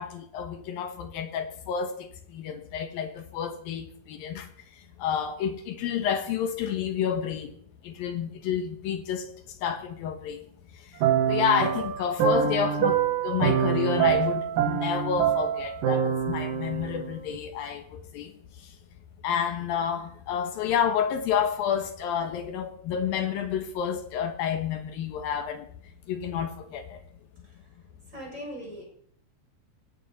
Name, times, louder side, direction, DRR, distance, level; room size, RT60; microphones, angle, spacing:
voice 1, 0.0-4.5 5.0-7.5 7.8-9.3 9.6-10.4 11.3-18.3 19.2-25.7 26.1-27.0, left 8 dB, 70° left, 2.3 m, -29 dB
sound 1, 11.0-17.4, right 9 dB, 60° right, 2.5 m, -25 dB
voice 2, 28.1-28.8, equal, 15° right, 6.8 m, -39 dB
19.5 x 17.0 x 4.2 m
omnidirectional pair, 5.6 m